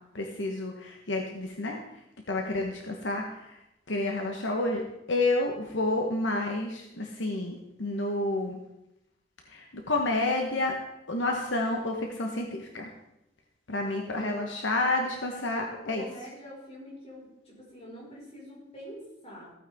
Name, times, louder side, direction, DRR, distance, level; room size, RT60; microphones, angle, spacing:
voice 1, 0.1-1.8 2.3-3.6 3.9-4.8 5.1-8.6 9.5-10.7 11.1-12.9 13.7-16.1, left 2 dB, 75° left, 2 dB, 1.1 m, -29 dB
voice 2, 13.8-14.4 15.2-19.5, equal, 35° left, -5 dB, 5.0 m, -45 dB
15.0 x 9.0 x 3.6 m, 0.87 s
head